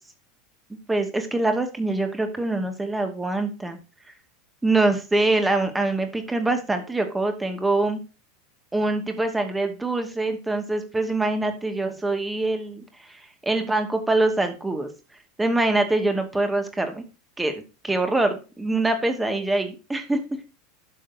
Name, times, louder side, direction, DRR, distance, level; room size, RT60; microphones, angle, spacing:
voice 1, 0.9-3.8 4.6-8.0 8.7-12.8 13.5-14.9 15.4-17.0 17.4-17.5 17.8-20.2, right 2 dB, 10° right, 6 dB, 2.4 m, -24 dB
12.0 x 7.4 x 2.9 m, 0.31 s
figure-of-eight pair, 80°, 0 cm